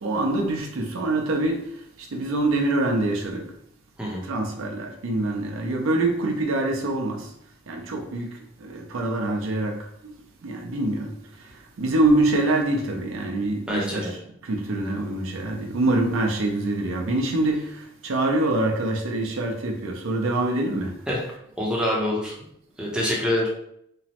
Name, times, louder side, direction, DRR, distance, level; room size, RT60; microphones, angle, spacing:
voice 1, 0.0-1.6 2.1-3.4 4.3-7.2 7.7-8.4 8.6-9.8 10.4-11.1 11.8-14.1 14.5-17.7 18.0-20.9, right 2 dB, 85° right, 0.5 m, -24 dB
voice 2, 13.7-14.1 21.1-21.3 21.6-22.3 22.8-23.5, left 1 dB, 5° right, 0.6 m, -25 dB
3.0 x 2.0 x 2.8 m
head